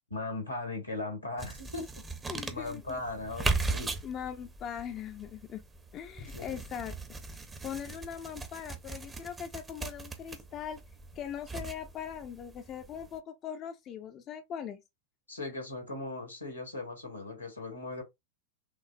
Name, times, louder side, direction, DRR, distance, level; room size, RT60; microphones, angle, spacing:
voice 1, 0.1-2.0 2.5-3.9 6.2-6.4 15.3-18.0, left 2 dB, 85° left, 1.5 m, -38 dB
sound 1, 1.4-13.2, right 3 dB, 15° right, 0.7 m, -38 dB
voice 2, 2.3-3.0 4.0-5.6 5.9-6.9 7.6-10.8 11.1-14.8, left 9 dB, 30° left, 0.5 m, -40 dB
5.8 x 2.0 x 2.5 m
figure-of-eight pair, 90°, 0 cm